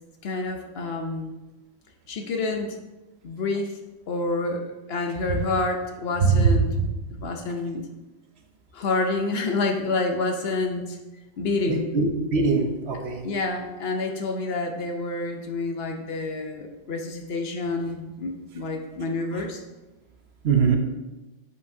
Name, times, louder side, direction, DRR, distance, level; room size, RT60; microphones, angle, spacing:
voice 1, 0.2-1.3 2.1-2.8 3.2-3.8 4.1-6.8 7.2-7.9 8.7-11.0 11.4-11.9 13.2-19.6, left 3 dB, 60° left, 3 dB, 0.9 m, -28 dB
voice 2, 11.7-13.2 20.4-20.8, right 5 dB, 60° right, 3 dB, 1.0 m, -22 dB
7.7 x 5.5 x 2.7 m, 1.1 s
omnidirectional pair, 1.3 m